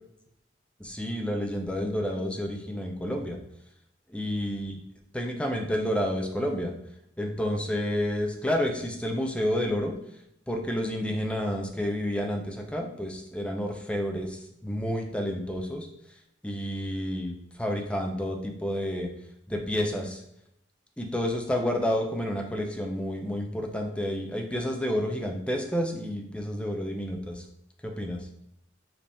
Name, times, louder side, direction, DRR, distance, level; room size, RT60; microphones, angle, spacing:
voice 1, 0.8-3.4 4.1-4.8 5.1-6.7 7.2-9.9 10.5-15.9 16.4-19.1 19.5-20.2 21.0-27.5 27.8-28.2, equal, 5° left, 3 dB, 0.4 m, -30 dB
5.2 x 2.8 x 3.4 m, 0.78 s
head